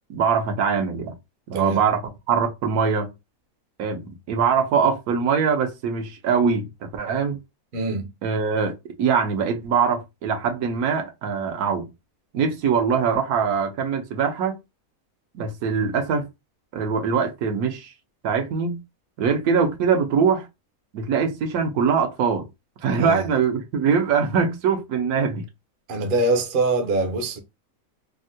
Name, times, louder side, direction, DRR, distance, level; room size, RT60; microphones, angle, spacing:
voice 1, 0.1-1.1 1.5-3.1 3.8-7.4 8.2-11.9 12.3-14.6 15.3-16.3 16.7-17.9 18.2-18.8 19.2-20.5 20.9-22.5 22.8-25.4, right 6 dB, 80° right, 1.2 m, -23 dB
voice 2, 7.7-8.1 23.0-23.3 25.9-27.4, right 2 dB, 55° right, 0.5 m, -23 dB
3.5 x 2.1 x 2.6 m
omnidirectional pair, 1.6 m